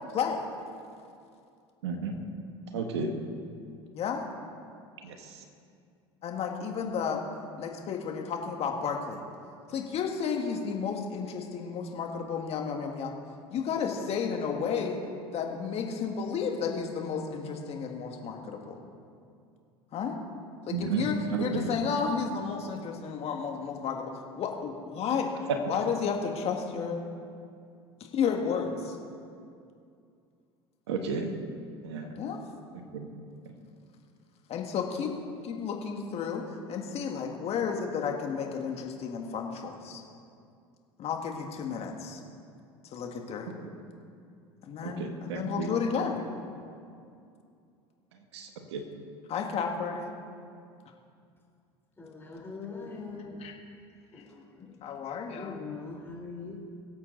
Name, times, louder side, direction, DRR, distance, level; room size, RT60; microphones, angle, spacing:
voice 1, 1.8-2.2 2.7-3.1 5.0-5.2 20.7-21.7 30.9-31.3 31.8-32.1 32.9-33.1 44.8-45.7 48.3-48.8, right 4 dB, 85° right, 5 dB, 1.4 m, -32 dB
voice 2, 6.2-7.2 7.6-9.2 9.7-13.1 13.5-15.0 15.3-18.8 19.9-20.2 20.7-25.3 25.6-27.0 28.0-29.0 32.1-32.4 34.5-35.1 35.4-40.0 41.0-42.2 42.9-43.5 44.7-46.2 49.3-50.1 53.2-53.5 54.8-55.7, left 6 dB, 50° left, 2 dB, 1.8 m, -32 dB
voice 3, 52.0-53.3 54.1-54.7 55.3-56.6, left 4 dB, 15° left, -2 dB, 3.8 m, -42 dB
22.0 x 8.2 x 4.0 m, 2.4 s
hypercardioid pair, 80°, 14 cm